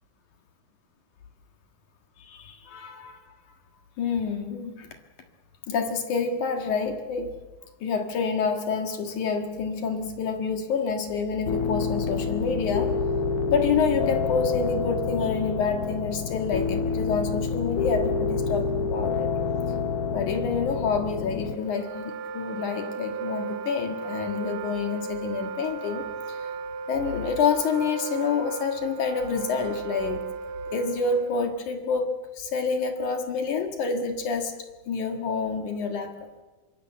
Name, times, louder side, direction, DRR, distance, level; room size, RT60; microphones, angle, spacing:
voice 1, 2.2-3.2 4.0-4.9 5.7-7.3 7.8-12.9 13.5-19.3 20.1-26.5 26.9-30.3 30.7-34.5 34.9-36.1, left 5 dB, 60° left, 5 dB, 2.9 m, -28 dB
sound 1, 11.5-21.6, left 5 dB, 85° left, 1.3 m, -28 dB
Wind instrument woodwind instrument, 21.5-31.5, right 5 dB, 75° right, 2.5 m, -35 dB
24.5 x 22.5 x 7.6 m, 1.2 s
omnidirectional pair, 4.2 m